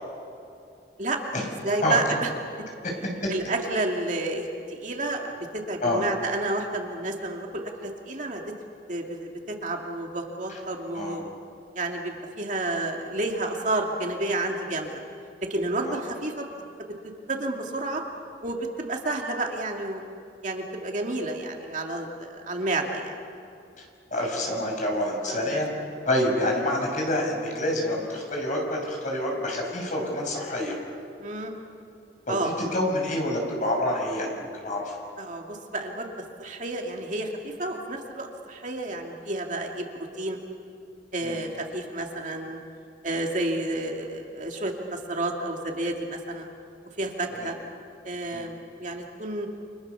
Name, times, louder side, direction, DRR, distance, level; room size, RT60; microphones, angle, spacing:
voice 1, 1.0-2.3 3.3-8.4 8.9-11.3 11.7-14.9 15.4-16.4 17.0-18.0 18.4-20.0 20.4-23.1 25.3-25.9 31.2-31.5 32.3-32.5 35.2-36.1 36.4-40.4 41.1-42.6 43.0-46.5 47.0-47.6 48.0-49.5, right 2 dB, 45° right, 2 dB, 2.5 m, -30 dB
voice 2, 24.1-25.7 26.0-30.8 32.3-32.4 32.7-34.9 41.2-41.4 47.4-47.5 48.3-48.5, left 1 dB, 45° left, 0 dB, 6.5 m, -27 dB
30.0 x 27.0 x 7.0 m, 2.6 s
head